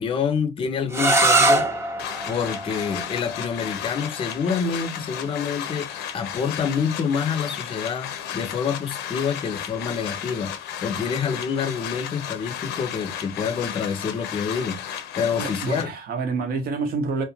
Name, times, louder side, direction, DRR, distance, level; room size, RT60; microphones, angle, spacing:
voice 1, 0.0-1.7 2.2-14.8 15.2-15.9, left 6 dB, 30° left, 0.5 m, -27 dB
sound 1, 0.9-6.6, right 2 dB, 15° right, 0.6 m, -25 dB
sound 2, 2.0-15.8, left 9 dB, 85° left, 0.5 m, -34 dB
voice 2, 15.2-17.2, right 4 dB, 65° right, 0.8 m, -28 dB
2.4 x 2.1 x 2.7 m
cardioid pair, 110°, 17 cm